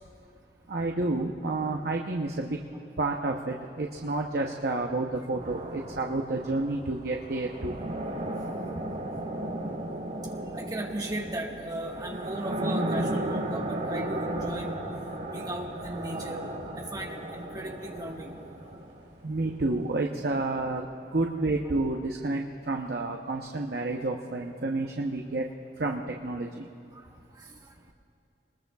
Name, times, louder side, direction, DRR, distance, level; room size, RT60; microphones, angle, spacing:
voice 1, 0.7-2.6 3.0-7.8 19.2-20.9 21.1-25.5 25.8-26.7, right 2 dB, 60° right, 1 dB, 0.8 m, -30 dB
sound 1, 5.4-19.2, right 1 dB, 45° right, 4.4 m, -35 dB
voice 2, 10.5-14.7 15.3-16.4 16.7-18.3 26.9-27.9, right 1 dB, 20° right, 0 dB, 1.4 m, -37 dB
27.0 x 20.5 x 2.3 m, 2.6 s
head